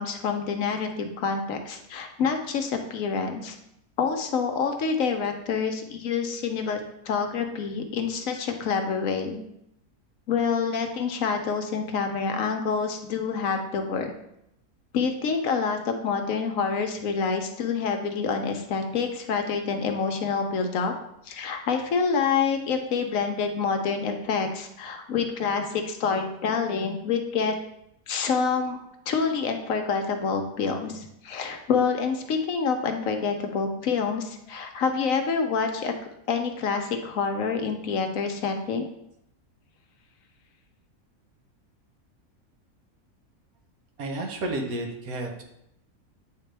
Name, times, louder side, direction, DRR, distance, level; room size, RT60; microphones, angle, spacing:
voice 1, 0.0-3.6 4.0-9.4 10.3-14.1 14.9-20.9 21.3-27.5 28.1-28.8 29.1-35.9 36.3-38.9, left 5 dB, 70° left, 5 dB, 1.1 m, -27 dB
voice 2, 44.0-45.4, right 2 dB, 70° right, 2 dB, 1.5 m, -31 dB
9.0 x 3.8 x 3.3 m, 0.78 s
omnidirectional pair, 1.6 m